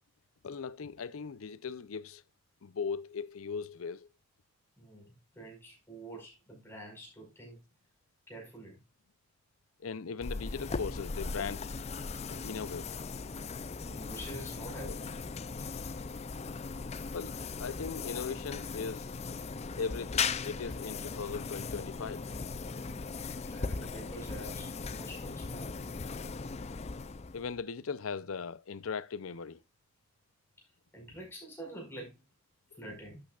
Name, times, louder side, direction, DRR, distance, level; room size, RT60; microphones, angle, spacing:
voice 1, 0.4-2.2 2.6-4.1 9.8-11.7 12.3-12.9 14.8-14.9 17.1-19.1 19.8-22.3 27.3-29.6, left 5 dB, 85° left, 0.6 m, -38 dB
voice 2, 4.8-7.6 8.3-8.8 13.8-15.3 22.7-23.1 23.5-25.9 30.9-32.2 32.8-33.2, right 1 dB, 10° left, 5.1 m, -47 dB
sound 1, 10.2-27.6, left 4 dB, 30° left, 0.5 m, -38 dB
11.5 x 8.8 x 2.4 m
head